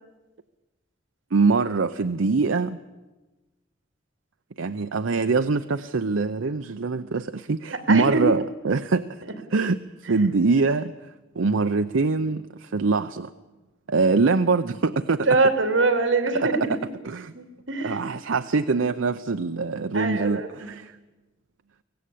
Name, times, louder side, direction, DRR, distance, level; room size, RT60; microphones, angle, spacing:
voice 1, 1.3-2.8 4.6-9.2 9.5-13.3 13.9-15.3 16.3-16.5 17.0-17.3 17.8-21.0, right 4 dB, 90° right, 10 dB, 0.7 m, -24 dB
voice 2, 7.9-8.2 15.3-16.7 17.3-18.0 18.7-18.9 19.9-20.7, right 3 dB, 70° right, 7 dB, 2.7 m, -23 dB
23.5 x 17.5 x 8.5 m, 1.1 s
head